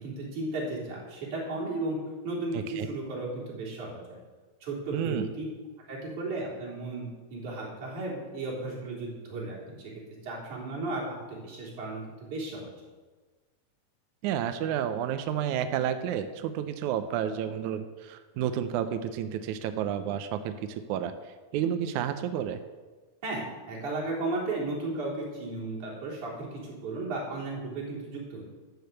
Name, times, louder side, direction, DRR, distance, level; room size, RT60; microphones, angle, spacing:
voice 1, 0.0-2.0 2.2-4.2 4.6-5.4 5.9-12.0 12.3-12.7 23.2-28.5, right 2 dB, 55° right, -5 dB, 4.9 m, -35 dB
voice 2, 2.5-2.9 4.9-5.3 14.2-21.1 21.5-22.6, right 9 dB, 80° right, 9 dB, 1.8 m, -30 dB
12.5 x 7.0 x 7.9 m, 1.3 s
omnidirectional pair, 4.1 m